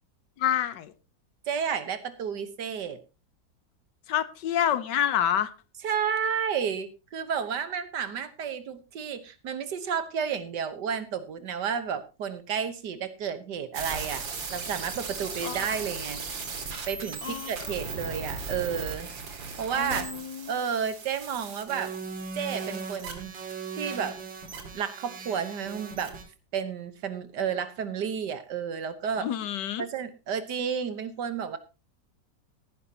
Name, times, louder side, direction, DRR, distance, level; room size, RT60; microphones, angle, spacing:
voice 1, 0.4-0.9 4.1-5.5 15.4-15.7 17.2-17.5 19.7-20.5 29.2-29.8, left 10 dB, 75° left, 1.4 m, -28 dB
voice 2, 1.5-3.0 5.8-14.2 14.5-16.2 16.9-19.1 19.3-20.1 20.5-21.9 22.4-23.3 23.8-24.2 24.7-26.2 26.5-29.3 29.8-31.6, right 7 dB, 70° right, 1.7 m, -31 dB
sound 1, 13.7-26.2, right 5 dB, 90° right, 2.8 m, -37 dB
18.0 x 10.5 x 2.9 m
omnidirectional pair, 2.0 m